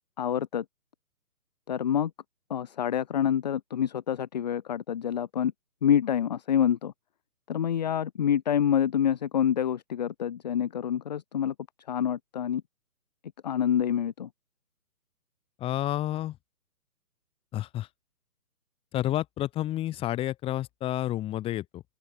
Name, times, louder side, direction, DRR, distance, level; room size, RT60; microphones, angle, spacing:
voice 1, 0.2-0.6 1.7-2.1 2.5-5.5 5.8-6.9 7.5-11.5 11.9-12.6 13.4-14.3, left 9 dB, 30° left, 1.0 m, -27 dB
voice 2, 15.6-16.4 17.5-17.9 18.9-21.8, left 14 dB, 10° left, 4.1 m, -30 dB
open air
hypercardioid pair, 160°, 46 cm